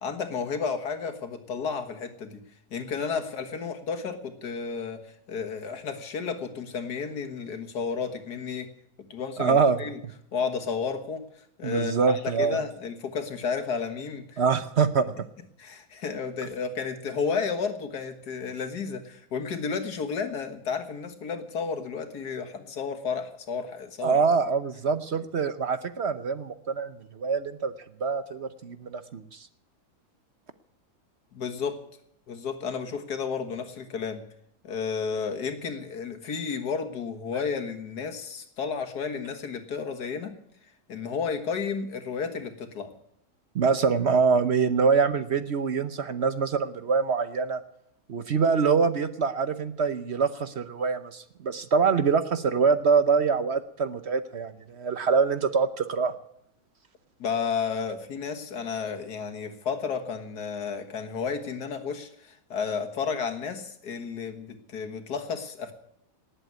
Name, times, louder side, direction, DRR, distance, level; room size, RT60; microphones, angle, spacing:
voice 1, 0.0-2.4 2.7-8.7 9.1-10.0 10.3-14.4 15.6-24.2 31.3-31.8 32.3-34.2 34.6-40.3 40.9-42.9 57.2-65.7, left 5 dB, 90° left, 6 dB, 2.1 m, -32 dB
voice 2, 9.4-9.8 11.6-12.6 14.4-15.1 24.0-27.7 28.0-29.4 43.5-47.6 48.1-56.1, right 5 dB, 50° right, 11 dB, 0.9 m, -24 dB
18.5 x 8.0 x 9.4 m, 0.75 s
omnidirectional pair, 1.7 m